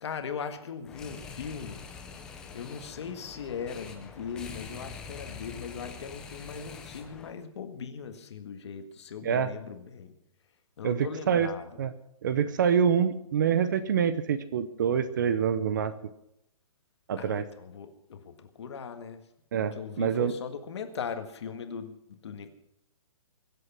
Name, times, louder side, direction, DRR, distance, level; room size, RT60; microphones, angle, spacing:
voice 1, 0.0-1.8 2.5-10.2 10.8-11.7 17.2-19.2 19.6-22.5, left 6 dB, 50° left, 7 dB, 1.7 m, -39 dB
sound 1, 0.8-7.3, left 5 dB, 5° left, 0.4 m, -45 dB
voice 2, 9.2-9.5 10.8-11.5 11.8-11.9 12.2-15.9 17.1-17.4 19.5-20.3, right 7 dB, 35° right, 14 dB, 0.7 m, -26 dB
23.5 x 8.1 x 5.9 m, 0.81 s
hypercardioid pair, 170°, 18 cm